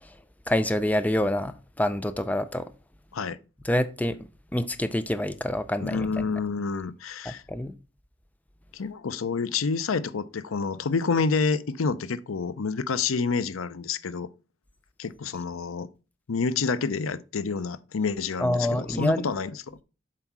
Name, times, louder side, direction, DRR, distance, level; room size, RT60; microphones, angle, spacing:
voice 1, 0.5-2.7 3.6-4.2 4.5-6.1 7.3-7.8 18.4-19.2, left 1 dB, 10° left, 0.5 m, -26 dB
voice 2, 5.8-7.4 8.7-14.3 15.0-15.9 16.3-19.8, left 4 dB, 85° left, 0.6 m, -28 dB
7.5 x 4.5 x 6.0 m
head